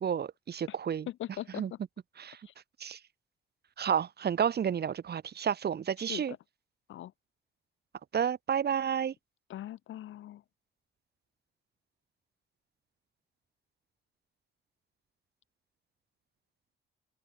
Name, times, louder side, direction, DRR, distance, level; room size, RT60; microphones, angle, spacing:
voice 1, 0.0-1.1 1.6-1.7 2.2-2.4 2.8-3.0 3.8-6.3 8.1-9.1, right 8 dB, 55° right, 5.3 m, -31 dB
voice 2, 1.1-1.8 2.5-2.6 6.0-6.2 6.9-7.1 9.5-10.4, left 13 dB, 80° left, 5.7 m, -41 dB
open air
cardioid pair, 90°, 20 cm